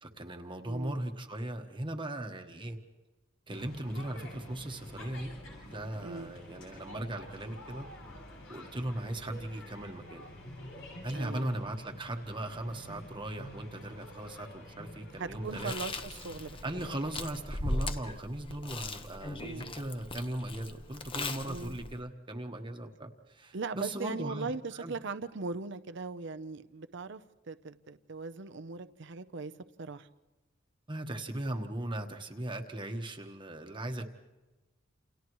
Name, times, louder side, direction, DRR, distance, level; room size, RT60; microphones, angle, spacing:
voice 1, 0.0-2.8 3.5-5.3 5.7-7.9 8.5-10.2 11.0-15.7 16.6-24.5 24.8-24.9 30.9-34.0, right 1 dB, 25° right, 1.2 m, -38 dB
voice 2, 0.6-1.0 6.0-6.3 11.1-11.5 15.2-16.6 19.4-19.7 21.5-21.8 23.5-27.2 27.5-29.5 29.8-30.1, right 4 dB, 65° right, 0.7 m, -39 dB
sound 1, 3.5-17.4, left 1 dB, 85° left, 7.6 m, -48 dB
Chewing mastication, 15.4-22.0, left 2 dB, 30° left, 0.9 m, -39 dB
29.0 x 28.5 x 3.1 m
head